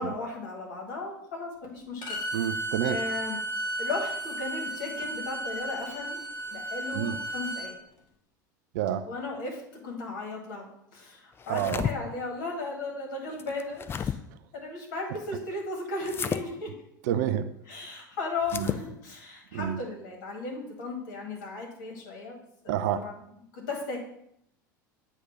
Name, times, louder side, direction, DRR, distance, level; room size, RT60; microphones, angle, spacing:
voice 1, 0.0-2.4 2.8-3.4 3.8-6.2 6.5-7.7 9.1-14.2 14.5-16.7 17.7-23.2 23.5-24.0, left 3 dB, 60° left, -1 dB, 2.0 m, -36 dB
Bowed string instrument, 2.0-7.7, right 1 dB, 40° left, 1.5 m, -34 dB
voice 2, 2.3-3.0 6.9-7.2 8.7-9.1 11.5-11.9 17.0-17.5 18.5-18.7 19.5-19.8 22.7-23.0, right 10 dB, 55° right, 10 dB, 0.4 m, -28 dB
sound 1, 11.4-11.9 13.4-14.2 16.0-16.4 18.4-18.8, left 7 dB, 20° left, 0.3 m, -32 dB
8.0 x 2.7 x 5.7 m, 0.74 s
figure-of-eight pair, 75°, 11 cm